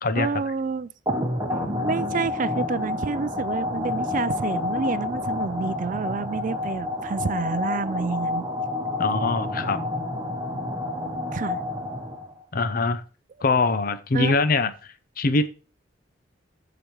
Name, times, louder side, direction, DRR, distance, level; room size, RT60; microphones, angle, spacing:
voice 1, 0.2-0.9 1.8-8.5 11.3-11.6 14.1-14.4, right 5 dB, 45° right, 0.4 m, -28 dB
sound 1, 1.1-12.4, left 2 dB, 15° right, 1.1 m, -29 dB
voice 2, 9.0-9.8 12.5-13.0 13.4-15.5, left 3 dB, 50° left, 0.6 m, -23 dB
15.0 x 5.0 x 3.0 m
head